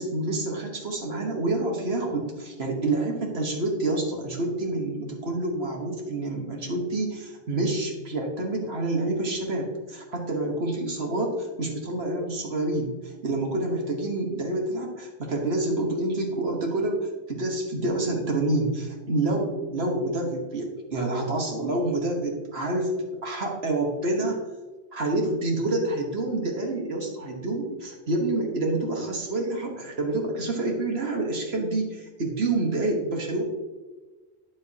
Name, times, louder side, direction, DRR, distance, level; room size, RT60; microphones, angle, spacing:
voice 1, 0.0-22.9 23.2-24.4 24.9-33.4, right 2 dB, 65° right, 1 dB, 1.5 m, -28 dB
9.7 x 7.3 x 2.8 m, 1.3 s
omnidirectional pair, 1.2 m